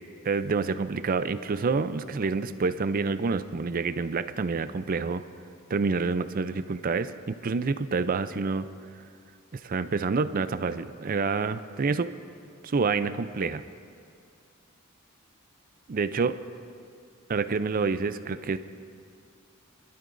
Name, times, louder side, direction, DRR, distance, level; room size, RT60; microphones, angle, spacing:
voice 1, 0.2-5.2 5.7-8.7 9.5-12.1 12.6-13.6 15.9-16.4 17.3-18.6, right 4 dB, 40° right, 12 dB, 0.4 m, -28 dB
28.0 x 12.0 x 2.6 m, 2.3 s
head